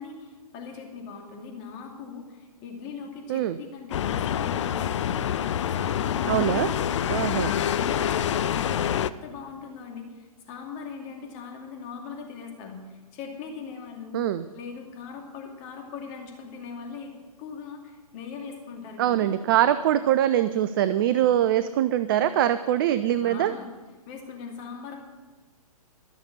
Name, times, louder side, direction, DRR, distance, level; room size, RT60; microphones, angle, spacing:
voice 1, 0.0-5.2 5.6-7.3 7.7-14.2 14.5-17.1 17.4-19.3 23.2-23.7 24.1-25.0, left 5 dB, 35° left, 2 dB, 2.5 m, -40 dB
sound 1, 3.9-9.1, left 9 dB, 50° left, 0.5 m, -26 dB
voice 2, 6.3-6.7 7.1-7.5 14.1-14.4 19.0-23.5, right 11 dB, 35° right, 13 dB, 0.4 m, -23 dB
13.5 x 6.7 x 9.9 m, 1.3 s
figure-of-eight pair, 125°, 19 cm